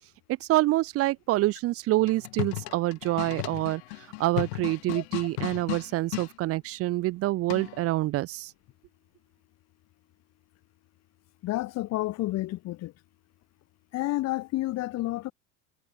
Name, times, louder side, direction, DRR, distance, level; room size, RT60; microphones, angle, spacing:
voice 1, 0.4-8.5, right 17 dB, 40° right, 0.8 m, -27 dB
sound 1, 2.0-6.3 7.5-7.9, left 26 dB, 70° left, 1.8 m, -35 dB
voice 2, 11.4-12.9 13.9-15.3, left 17 dB, 50° left, 2.5 m, -30 dB
supercardioid pair, 110°, 34 cm